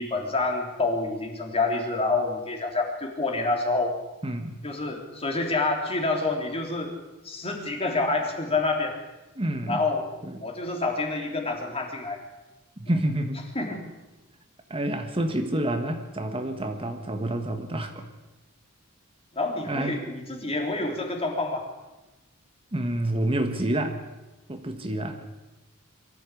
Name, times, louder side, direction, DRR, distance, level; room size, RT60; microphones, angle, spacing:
voice 1, 0.0-3.9 4.6-6.9 7.2-8.9 9.7-10.0 10.4-12.2 12.9-13.0 13.5-13.8 19.3-21.7, left 3 dB, 30° left, 2 dB, 3.3 m, -27 dB
voice 2, 4.2-4.6 9.4-9.8 10.2-10.4 12.8-13.4 14.7-18.1 19.6-20.0 22.7-24.0 24.5-25.2, right 1 dB, 25° right, 6 dB, 1.4 m, -28 dB
23.0 x 14.5 x 8.4 m, 1.1 s
head